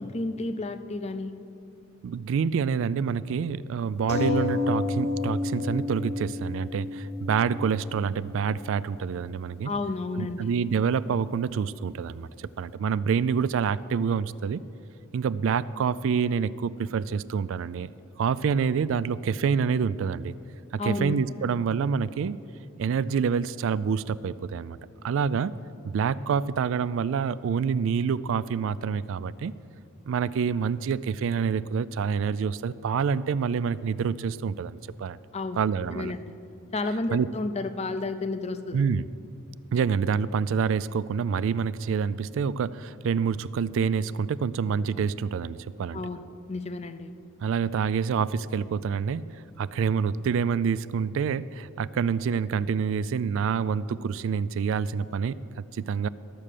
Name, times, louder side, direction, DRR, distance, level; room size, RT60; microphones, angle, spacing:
voice 1, 0.0-1.3 9.6-10.5 20.8-21.2 35.3-35.6 35.9-36.3 36.7-38.8 45.9-47.1, left 3 dB, 30° left, 10 dB, 0.5 m, -31 dB
voice 2, 2.0-9.7 10.2-12.3 12.6-14.6 15.1-17.9 18.2-20.3 20.7-22.4 22.8-24.8 25.0-25.6 25.8-29.5 30.1-35.2 35.6-36.1 37.1-37.3 38.7-39.0 39.7-46.0 47.4-49.2 49.6-56.1, right 6 dB, 60° right, 18 dB, 0.3 m, -27 dB
sound 1, 4.1-9.1 9.8-9.9 10.2-10.3, left 3 dB, 50° left, 1.1 m, -30 dB
12.5 x 7.4 x 6.6 m, 2.5 s
head